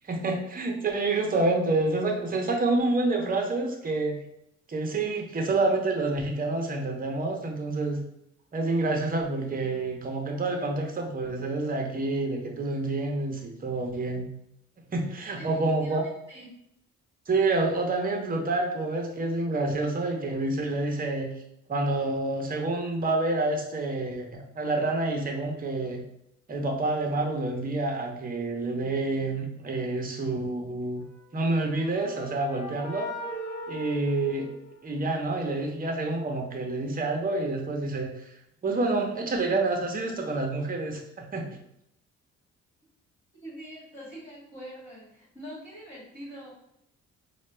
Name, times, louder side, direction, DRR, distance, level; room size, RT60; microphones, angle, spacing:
voice 1, 0.1-4.2 4.7-8.0 8.5-14.3 14.9-16.0 17.3-21.3 21.7-24.3 24.6-26.0 26.5-31.0 31.3-33.1 33.7-34.5 34.8-38.1 38.6-41.5, right 2 dB, 30° right, 2 dB, 0.8 m, -28 dB
voice 2, 15.1-16.0 16.3-16.5 43.4-46.5, equal, 20° left, -8 dB, 1.4 m, -44 dB
sound 1, 31.3-35.2, equal, 60° left, 0.8 m, -39 dB
3.9 x 2.2 x 3.2 m, 0.79 s
cardioid pair, 90°, 30 cm